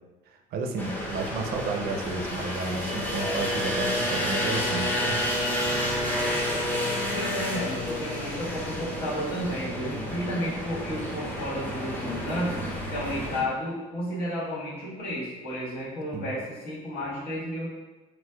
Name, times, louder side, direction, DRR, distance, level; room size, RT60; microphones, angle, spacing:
voice 1, 0.3-5.2 16.1-16.3, right 3 dB, 65° right, 4 dB, 0.4 m, -32 dB
sound 1, 0.8-13.4, left 1 dB, 10° left, 0.5 m, -30 dB
voice 2, 6.0-6.4 7.1-17.7, equal, 70° left, -7 dB, 1.4 m, -32 dB
4.3 x 2.1 x 2.2 m, 1.2 s
cardioid pair, 110°, 17 cm